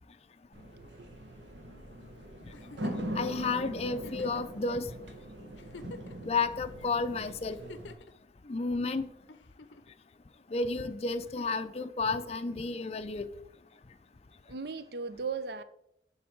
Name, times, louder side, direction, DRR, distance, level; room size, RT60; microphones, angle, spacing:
sound 1, 0.5-7.9, right 1 dB, 85° right, 1.4 m, -41 dB
voice 1, 0.8-1.1 14.5-15.6, right 5 dB, 60° right, 0.5 m, -37 dB
Giggle, 2.5-3.1 4.0-4.5 5.1-5.2 5.5-6.3 7.5-8.1 9.3-9.9 11.2-11.7 13.2-13.3, left 3 dB, 80° left, 0.6 m, -49 dB
voice 2, 3.2-4.9 6.2-7.6 8.4-9.1 10.5-13.3, left 3 dB, 35° left, 0.4 m, -32 dB
10.5 x 4.0 x 4.5 m
head